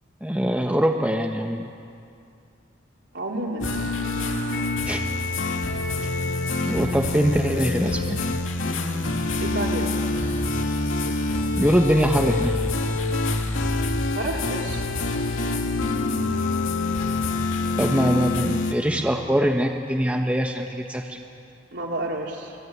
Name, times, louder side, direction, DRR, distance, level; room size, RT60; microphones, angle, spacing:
voice 1, 0.2-1.7 4.8-5.0 6.7-8.2 11.6-12.6 17.8-21.2, equal, 5° right, 2 dB, 1.2 m, -23 dB
voice 2, 3.1-3.7 9.4-9.9 14.1-14.9 21.7-22.6, right 1 dB, 60° right, -1 dB, 4.3 m, -30 dB
sound 1, 3.6-18.7, left 2 dB, 85° left, 2.4 m, -26 dB
29.5 x 21.0 x 9.6 m, 2.5 s
head